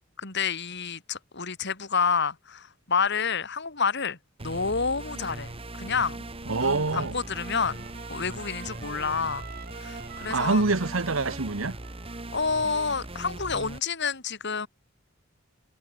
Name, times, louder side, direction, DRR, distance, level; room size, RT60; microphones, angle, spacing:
voice 1, 0.2-6.3 6.6-9.5 9.8-10.6 12.3-14.7, left 5 dB, 60° left, 3.7 m, -29 dB
sound 1, 4.4-13.8, right 2 dB, 30° right, 2.0 m, -39 dB
voice 2, 6.5-7.2 10.3-11.8, right 3 dB, 90° right, 1.3 m, -25 dB
Trumpet, 6.6-13.2, right 6 dB, 50° right, 5.7 m, -47 dB
head